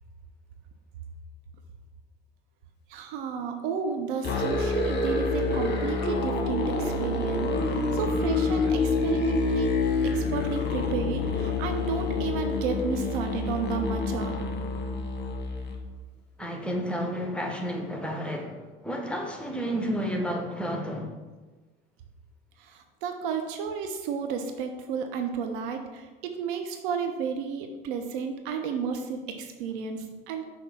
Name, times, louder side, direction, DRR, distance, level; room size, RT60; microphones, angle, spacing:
voice 1, 2.9-9.7 10.0-14.5 22.6-30.4, right 6 dB, 60° right, 0.6 m, -32 dB
Musical instrument, 4.2-15.8, left 3 dB, 35° left, 1.1 m, -27 dB
voice 2, 16.4-21.1, equal, 5° left, 1.0 m, -31 dB
5.7 x 3.0 x 5.6 m
figure-of-eight pair, 65°, 29 cm